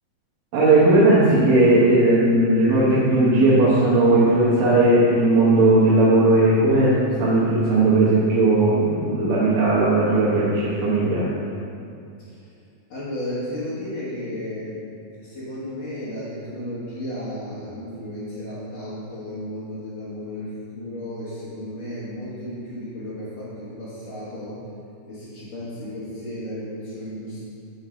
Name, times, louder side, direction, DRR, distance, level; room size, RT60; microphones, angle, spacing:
voice 1, 0.5-11.2, right 2 dB, 70° right, -9 dB, 2.7 m, -17 dB
voice 2, 12.9-14.9 15.2-24.6 25.1-27.4, left 1 dB, 50° left, -11 dB, 1.6 m, -33 dB
9.2 x 4.4 x 5.0 m, 2.5 s
omnidirectional pair, 4.1 m